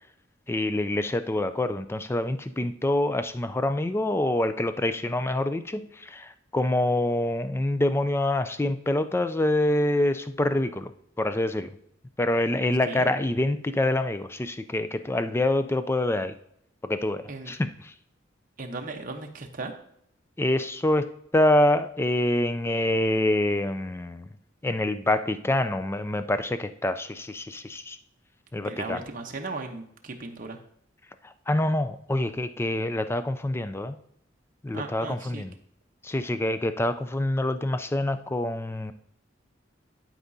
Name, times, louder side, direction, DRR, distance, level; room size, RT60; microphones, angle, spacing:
voice 1, 0.5-10.9 11.2-11.7 12.2-16.3 16.8-17.9 20.4-21.1 21.3-24.3 24.6-28.0 28.5-29.0 31.5-34.0 34.6-35.5 36.0-38.9, left 1 dB, 15° left, 10 dB, 0.4 m, -26 dB
voice 2, 18.6-19.8 28.6-30.6 34.7-35.4, right 3 dB, 45° right, 3 dB, 1.0 m, -36 dB
11.5 x 4.8 x 2.7 m, 0.71 s
head